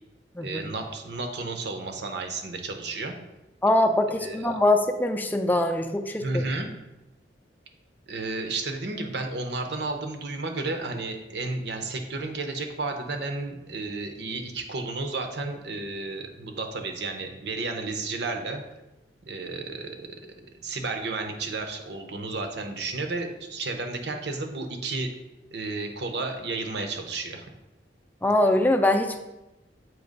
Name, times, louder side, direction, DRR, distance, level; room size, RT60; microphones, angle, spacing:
voice 1, 0.4-3.2 4.2-4.5 6.2-6.7 8.1-18.6 19.3-20.1 20.6-25.1 25.5-27.5, right 3 dB, 65° right, 4 dB, 0.8 m, -32 dB
voice 2, 3.6-6.4 28.2-29.2, left 1 dB, 10° left, 4 dB, 0.5 m, -23 dB
7.6 x 3.0 x 5.2 m, 0.99 s
head